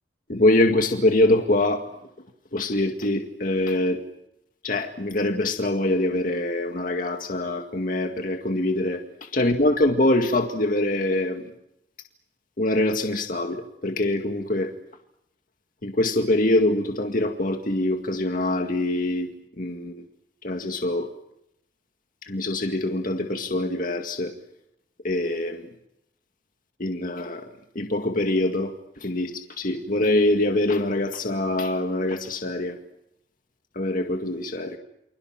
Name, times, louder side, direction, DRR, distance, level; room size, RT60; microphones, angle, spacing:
voice 1, 0.3-1.8 2.5-4.0 4.6-11.5 12.6-14.7 15.8-19.3 19.6-20.0 20.4-21.1 22.3-24.4 25.0-25.7 26.8-27.5 27.8-32.8 33.8-34.8, left 1 dB, 50° left, 4 dB, 2.1 m, -24 dB
29.5 x 26.5 x 6.0 m, 0.78 s
head